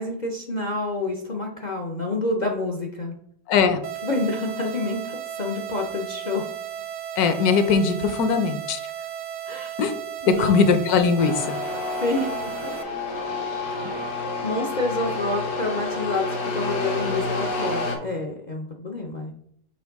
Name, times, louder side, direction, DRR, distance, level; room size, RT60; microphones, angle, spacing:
voice 1, 0.0-3.1 4.0-6.5 9.5-9.7 10.2-10.6 12.0-12.3 14.4-19.3, left 2 dB, 55° left, 1 dB, 0.5 m, -28 dB
voice 2, 3.5-3.8 7.2-8.8 9.8-9.9 10.3-11.6 13.8-13.9, left 5 dB, 70° left, 8 dB, 1.2 m, -20 dB
sound 1, 3.8-12.8, right 10 dB, 65° right, 0.8 m, -35 dB
sound 2, 11.2-18.0, left 3 dB, 90° left, 1.7 m, -29 dB
6.2 x 4.5 x 3.5 m, 0.67 s
omnidirectional pair, 1.7 m